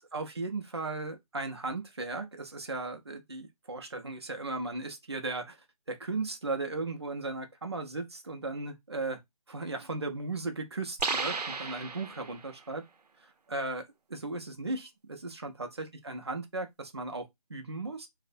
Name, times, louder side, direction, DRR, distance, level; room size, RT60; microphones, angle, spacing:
voice 1, 0.0-5.6 5.9-9.2 9.5-12.8 13.2-18.1, right 3 dB, 40° right, 0.5 m, -36 dB
sound 1, 11.0-12.6, right 4 dB, 85° right, 0.6 m, -34 dB
2.4 x 2.0 x 2.5 m
figure-of-eight pair, 180°, 20 cm